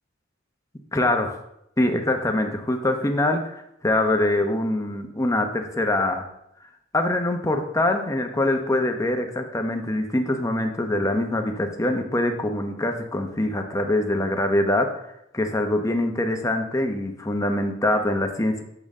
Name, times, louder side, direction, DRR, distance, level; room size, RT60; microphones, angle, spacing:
voice 1, 0.9-1.4 1.8-6.2 6.9-14.9 15.3-18.6, left 1 dB, 15° left, 4 dB, 0.9 m, -24 dB
8.7 x 6.9 x 3.7 m, 0.79 s
head